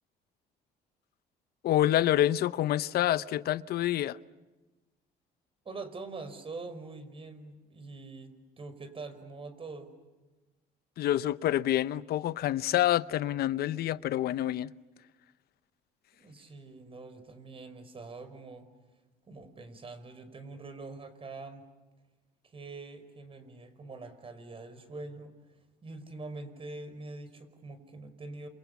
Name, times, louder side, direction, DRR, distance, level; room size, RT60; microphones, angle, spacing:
voice 1, 1.6-4.2 11.0-14.7, left 13 dB, 65° left, 0.8 m, -27 dB
voice 2, 5.7-9.9 16.1-18.7 19.3-21.6 22.4-25.3 25.8-28.5, right 3 dB, 35° right, 5.3 m, -44 dB
30.0 x 28.0 x 7.1 m
cardioid pair, 110°, 17 cm